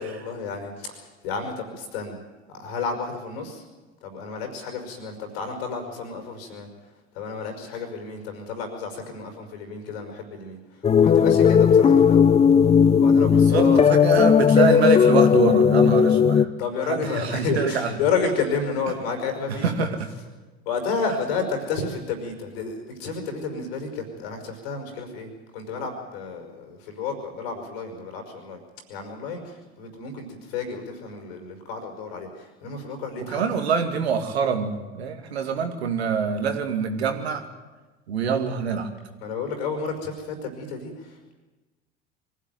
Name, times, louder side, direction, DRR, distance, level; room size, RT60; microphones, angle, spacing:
voice 1, 0.0-2.2 2.5-3.6 4.0-6.7 7.1-12.3 13.0-13.9 16.6-19.9 20.7-28.6 28.9-33.4 39.2-41.3, left 5 dB, 65° left, 5 dB, 5.4 m, -31 dB
sound 1, 10.8-16.4, left 7 dB, 20° left, 0.7 m, -16 dB
voice 2, 13.3-16.5 16.8-17.9 19.5-20.1 33.2-37.4 38.1-38.9, right 6 dB, 75° right, 6 dB, 2.3 m, -25 dB
24.0 x 16.0 x 9.3 m, 1.2 s
figure-of-eight pair, 65°, 32 cm